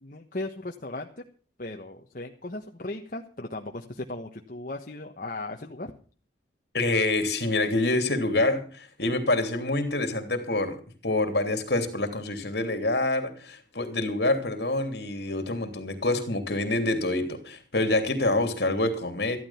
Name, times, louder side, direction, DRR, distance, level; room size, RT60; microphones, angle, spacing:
voice 1, 0.0-1.2 1.6-5.9, left 2 dB, 50° left, 2 dB, 1.3 m, -37 dB
voice 2, 6.7-10.8 11.0-19.4, left 2 dB, 65° left, 7 dB, 3.1 m, -26 dB
14.5 x 12.5 x 5.8 m, 0.40 s
head